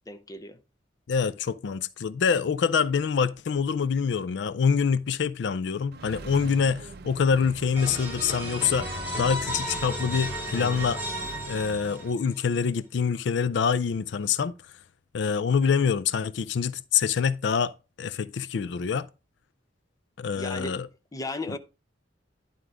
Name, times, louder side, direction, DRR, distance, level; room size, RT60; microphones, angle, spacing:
voice 1, 0.1-0.6 20.3-20.8 21.1-21.6, left 2 dB, 20° left, 0.6 m, -35 dB
voice 2, 1.1-11.0 11.5-14.5 15.1-19.1 20.2-20.9, left 6 dB, 65° left, 0.4 m, -26 dB
Accelerating revving vroom, 5.9-12.1, right 3 dB, 60° right, 0.6 m, -42 dB
sound 1, 7.8-12.4, equal, 10° right, 4.2 m, -34 dB
11.0 x 3.8 x 4.8 m
head